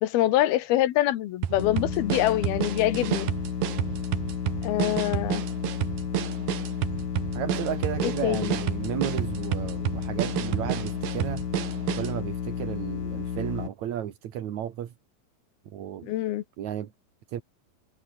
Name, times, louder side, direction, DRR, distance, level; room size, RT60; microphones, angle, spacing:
voice 1, 0.0-3.3 4.6-5.4 8.0-8.6 16.0-16.4, left 14 dB, 70° left, 2.5 m, -25 dB
sound 1, 1.4-12.2, right 11 dB, 60° right, 2.8 m, -30 dB
sound 2, 1.6-13.7, left 7 dB, 45° left, 3.5 m, -32 dB
voice 2, 7.3-11.5 12.0-14.9 15.6-16.1 16.6-16.9 17.3-17.4, right 10 dB, 80° right, 1.6 m, -33 dB
omnidirectional pair, 5.8 m